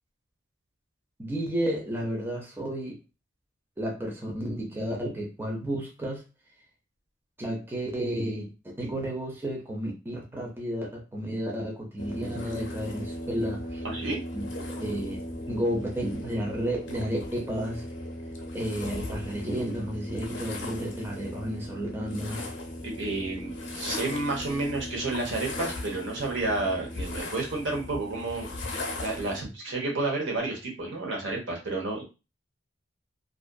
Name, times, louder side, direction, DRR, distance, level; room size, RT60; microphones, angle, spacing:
voice 1, 1.2-2.9 3.8-6.2 7.4-8.5 8.8-13.8 14.3-14.5 14.7-15.2 15.5-17.8 18.5-22.5, equal, 10° right, -2 dB, 0.6 m, -32 dB
sound 1, 12.0-29.4, left 1 dB, 70° left, 0.6 m, -37 dB
voice 2, 13.8-14.2 22.8-28.5 29.0-32.0, right 2 dB, 70° right, 0 dB, 0.9 m, -31 dB
2.5 x 2.4 x 2.2 m, 0.29 s
head